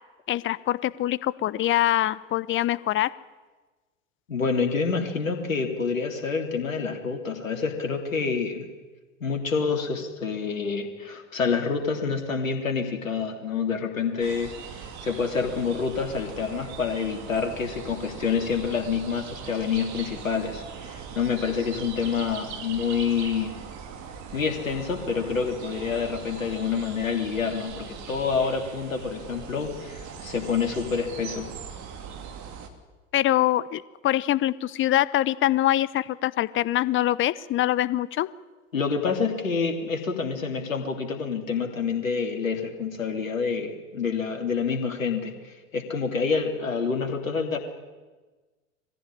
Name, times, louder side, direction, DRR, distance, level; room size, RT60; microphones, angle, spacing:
voice 1, 0.3-3.1 33.1-38.3, left 14 dB, 30° left, 19 dB, 0.8 m, -24 dB
voice 2, 4.3-8.7 9.2-23.5 24.3-31.5 38.7-47.6, left 5 dB, 80° left, 4 dB, 3.1 m, -27 dB
sound 1, 14.2-32.7, right 6 dB, 45° right, 3.1 m, -40 dB
21.5 x 15.5 x 9.9 m, 1.3 s
figure-of-eight pair, 85°, 39 cm